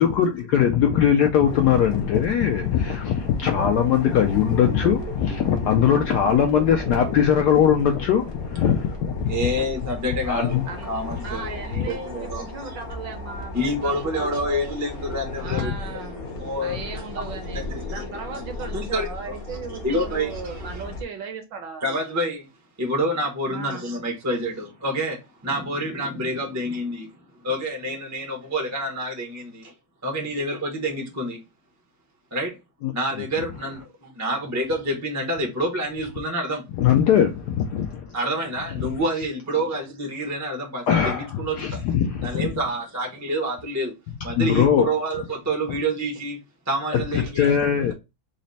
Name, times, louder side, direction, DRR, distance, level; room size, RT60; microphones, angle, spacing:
voice 1, 0.0-9.3 10.3-10.6 11.8-11.9 15.6-15.7 32.8-32.9 36.8-38.1 40.9-42.5 44.4-44.9 46.9-47.9, left 8 dB, 75° left, 0.9 m, -20 dB
sound 1, 1.4-21.0, left 2 dB, 55° left, 0.6 m, -36 dB
sound 2, 3.4-7.3, right 10 dB, 90° right, 1.5 m, -36 dB
voice 2, 9.3-10.6 10.8-12.8 13.5-15.9 16.4-16.8 17.9-18.0 18.3-18.4 18.7-19.1 19.8-20.8 21.8-22.5 22.8-27.1 27.4-29.7 30.0-31.4 32.3-32.6 32.9-36.6 38.1-41.8 42.2-43.9 44.2-46.4 46.7-47.5, right 1 dB, 25° right, 0.3 m, -28 dB
voice 3, 11.2-14.8 15.4-16.2 16.6-21.9 23.5-23.8, right 5 dB, 65° right, 1.5 m, -37 dB
4.0 x 2.1 x 3.9 m
omnidirectional pair, 2.2 m